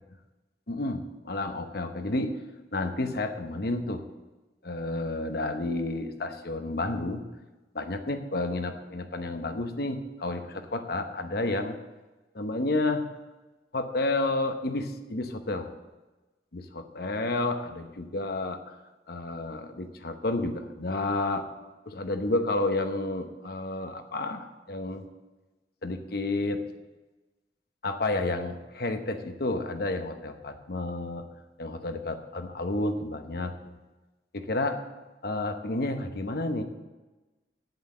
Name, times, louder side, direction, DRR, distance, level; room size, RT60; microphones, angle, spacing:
voice 1, 0.7-2.4 2.7-4.1 4.6-7.3 7.7-11.8 12.3-13.1 13.7-15.7 16.5-18.7 19.1-21.5 21.9-25.1 25.8-26.7 27.8-31.3 31.6-33.5 34.3-34.8 35.2-36.6, left 2 dB, 60° left, 7 dB, 0.9 m, -30 dB
8.7 x 8.1 x 7.2 m, 1.1 s
head